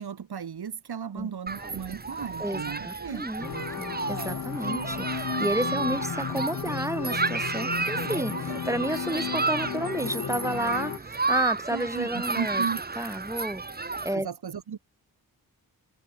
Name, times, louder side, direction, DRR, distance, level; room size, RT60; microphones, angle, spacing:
voice 1, 0.0-3.7 5.7-6.0 11.7-12.8 14.1-14.8, right 7 dB, 85° right, 4.5 m, -36 dB
Human group actions, 1.5-14.2, right 3 dB, 25° right, 1.4 m, -32 dB
voice 2, 2.4-3.5 3.8-12.6 12.9-14.3, right 1 dB, 10° right, 3.5 m, -31 dB
sound 1, 3.4-11.0, left 7 dB, 55° left, 1.8 m, -34 dB
wide cardioid pair, 125°, 38 cm